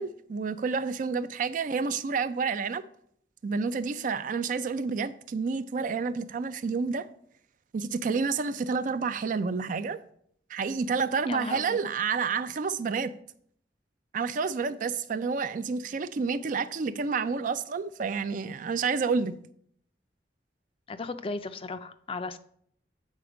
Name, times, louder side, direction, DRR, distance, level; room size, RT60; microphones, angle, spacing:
voice 1, 0.0-2.8 3.4-7.1 7.7-10.0 10.5-13.1 14.1-19.3, right 5 dB, 50° right, 0.4 m, -29 dB
voice 2, 11.3-11.9 20.9-22.4, left 3 dB, 30° left, 0.4 m, -36 dB
8.2 x 4.2 x 4.9 m
head